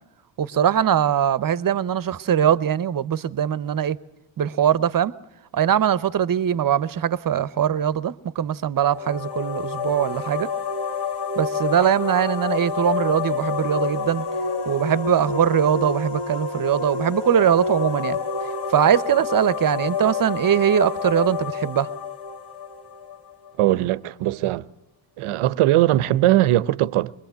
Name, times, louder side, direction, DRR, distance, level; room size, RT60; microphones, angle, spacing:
voice 1, 0.4-4.0 4.4-5.1 5.5-10.5 11.4-14.3 14.7-18.2 18.7-21.9, right 9 dB, 45° right, 0.8 m, -21 dB
sound 1, 8.8-23.5, left 5 dB, 55° left, 1.8 m, -28 dB
voice 2, 23.6-24.7 25.2-27.1, right 15 dB, 90° right, 0.8 m, -20 dB
23.0 x 22.0 x 8.1 m
cardioid pair, 90°, 49 cm